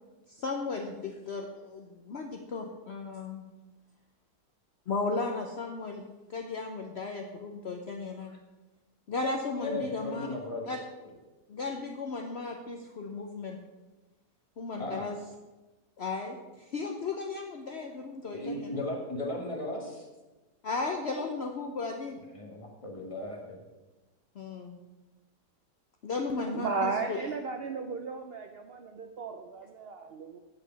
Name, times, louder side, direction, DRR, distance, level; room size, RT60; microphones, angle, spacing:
voice 1, 0.3-3.4 4.9-6.0 6.3-8.3 9.1-10.3 10.7-10.8 11.5-13.6 14.6-15.2 16.0-18.8 20.6-22.2 24.3-24.8 26.0-27.2, left 3 dB, 55° left, 2 dB, 0.8 m, -35 dB
voice 2, 9.6-10.7 14.8-15.1 18.3-20.1 22.3-23.6, left 1 dB, 20° left, -1 dB, 1.5 m, -36 dB
voice 3, 26.5-30.4, right 4 dB, 65° right, 6 dB, 0.6 m, -35 dB
8.9 x 4.8 x 6.9 m, 1.1 s
omnidirectional pair, 1.7 m